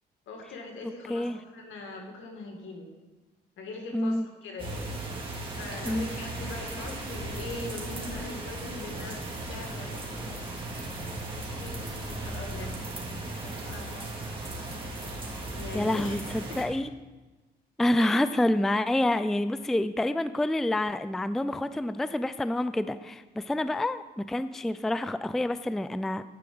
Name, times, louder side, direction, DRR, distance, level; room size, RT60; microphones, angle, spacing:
voice 1, 0.3-2.9 3.6-4.9 5.6-10.4 11.0-14.0 15.5-16.2 16.5-16.7 17.9-18.1, left 2 dB, 75° left, 2 dB, 2.2 m, -42 dB
voice 2, 3.9-4.2 5.9-6.1 15.7-16.9 17.8-26.2, left 1 dB, ahead, 13 dB, 0.3 m, -27 dB
sound 1, 4.6-16.6, right 2 dB, 25° right, 2.6 m, -36 dB
10.5 x 4.8 x 7.7 m, 1.1 s
cardioid pair, 90°, 20 cm